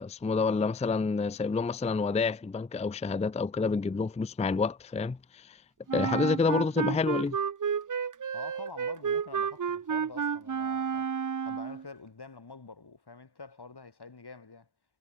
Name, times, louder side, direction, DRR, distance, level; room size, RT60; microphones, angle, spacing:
voice 1, 0.0-5.6 5.9-7.4, left 4 dB, 20° left, 0.4 m, -28 dB
Wind instrument woodwind instrument, 5.9-11.8, right 7 dB, 50° right, 0.6 m, -31 dB
voice 2, 8.3-11.1 11.4-14.7, left 4 dB, 85° left, 4.4 m, -47 dB
wide cardioid pair, 60°, 38 cm